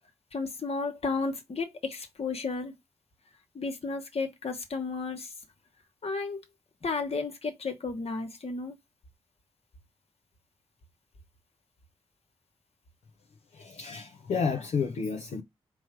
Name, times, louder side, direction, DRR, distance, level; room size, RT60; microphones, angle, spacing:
voice 1, 0.3-2.7 3.5-5.3 6.0-6.4 6.8-8.8, left 4 dB, 60° left, 1.1 m, -33 dB
voice 2, 13.5-15.4, left 5 dB, 90° left, 0.6 m, -31 dB
4.6 x 2.1 x 4.3 m
cardioid pair, 45°, 12 cm